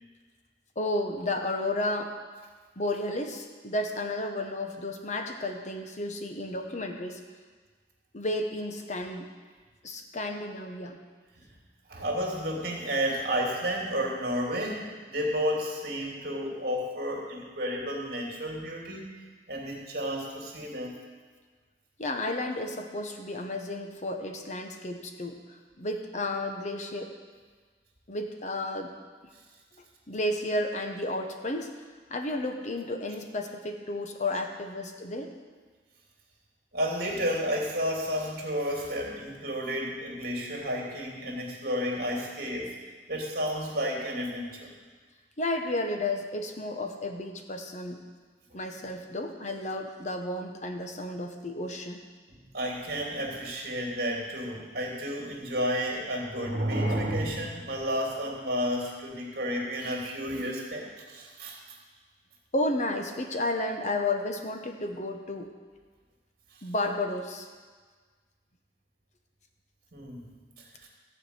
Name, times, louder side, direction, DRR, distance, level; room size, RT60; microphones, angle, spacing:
voice 1, 0.8-2.1 2.8-7.2 8.1-9.3 9.8-11.0 22.0-27.1 28.1-28.9 30.1-31.7 32.1-35.3 45.4-48.0 48.5-52.0 62.5-65.5 66.6-67.5, left 1 dB, 45° left, 4 dB, 1.1 m, -32 dB
voice 2, 11.9-19.1 19.5-21.0 36.7-42.7 43.1-44.7 52.3-61.6 69.9-70.3 70.6-70.9, equal, 60° right, -1 dB, 2.8 m, -31 dB
15.0 x 5.0 x 8.2 m, 1.5 s
head